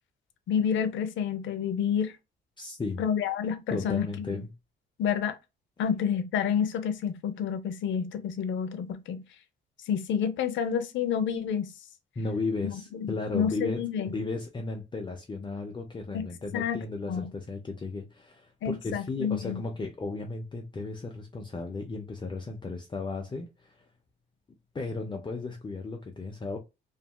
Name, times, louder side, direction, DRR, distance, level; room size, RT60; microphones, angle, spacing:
voice 1, 0.5-2.2 3.0-4.4 5.0-5.3 5.8-9.2 9.9-11.7 12.6-14.1 16.1-16.3 16.5-16.8 17.1-17.3 18.6-19.6, left 8 dB, 75° left, 0.6 m, -29 dB
voice 2, 2.6-3.0 3.7-4.5 12.2-23.9 24.7-26.6, left 3 dB, 25° left, 0.5 m, -35 dB
2.8 x 2.6 x 2.2 m
cardioid pair, 90°, 20 cm